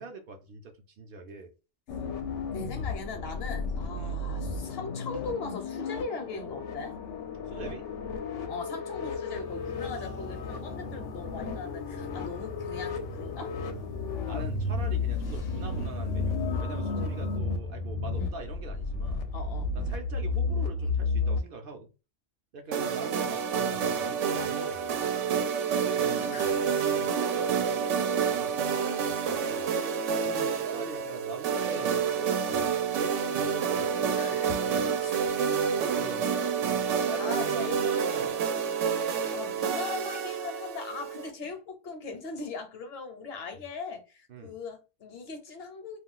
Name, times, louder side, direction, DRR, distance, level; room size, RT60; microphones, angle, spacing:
voice 1, 0.0-1.5 4.0-4.2 7.5-7.8 14.3-19.3 19.8-21.9 22.5-25.0 25.8-26.5 26.9-29.7 30.7-34.9 35.2-35.4 35.8-36.3 37.1-38.4 44.3-44.5, right 4 dB, 60° right, 0.6 m, -42 dB
sound 1, 1.9-21.4, left 3 dB, 85° left, 0.9 m, -33 dB
voice 2, 2.5-7.0 8.5-13.5 18.1-18.3 19.3-19.7 23.2-23.3 26.2-27.0 30.2-30.6 34.1-34.5 35.0-35.4 36.8-38.3 38.9-46.0, left 4 dB, 60° left, 0.9 m, -40 dB
sound 2, 9.4-17.4, left 4 dB, 45° left, 0.6 m, -44 dB
sound 3, 22.7-41.3, right 7 dB, 85° right, 0.9 m, -28 dB
2.4 x 2.2 x 3.7 m
omnidirectional pair, 1.2 m